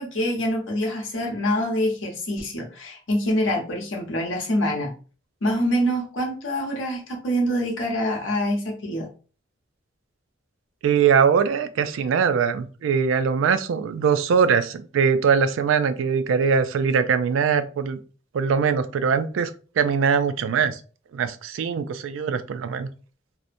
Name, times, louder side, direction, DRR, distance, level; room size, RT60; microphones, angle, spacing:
voice 1, 0.0-4.9 5.4-9.1, equal, 75° left, 0 dB, 0.9 m, -25 dB
voice 2, 10.8-18.0 18.3-19.5 19.8-20.8 21.1-22.9, right 6 dB, 85° right, 11 dB, 0.3 m, -22 dB
2.7 x 2.1 x 2.5 m, 0.38 s
head